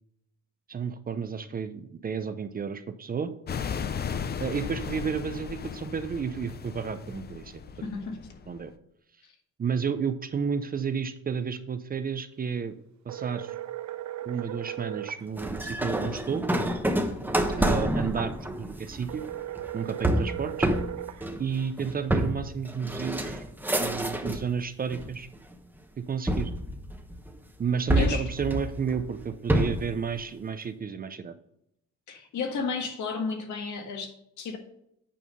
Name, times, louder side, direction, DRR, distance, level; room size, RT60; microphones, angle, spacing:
voice 1, 0.7-3.3 4.4-7.9 8.5-8.7 9.6-12.8 13.1-13.5 14.2-16.4 17.6-19.2 19.7-20.7 21.4-23.4 23.8-25.3 26.0-26.5 27.6-31.3, right 6 dB, 30° right, 10 dB, 0.5 m, -31 dB
sound 1, 3.5-8.7, left 7 dB, 35° left, 0.5 m, -36 dB
voice 2, 7.8-8.3 9.2-9.3 27.9-28.2 32.1-34.6, left 4 dB, 75° left, 4 dB, 1.8 m, -33 dB
sound 2, 13.1-15.2 19.1-21.2, right 13 dB, 70° right, 0.7 m, -37 dB
sound 3, 15.4-24.5 24.9-25.5 26.3-27.3 27.9-29.9, right 1 dB, 5° right, 0.9 m, -28 dB
8.6 x 5.5 x 5.3 m, 0.78 s
cardioid pair, 145°, 30 cm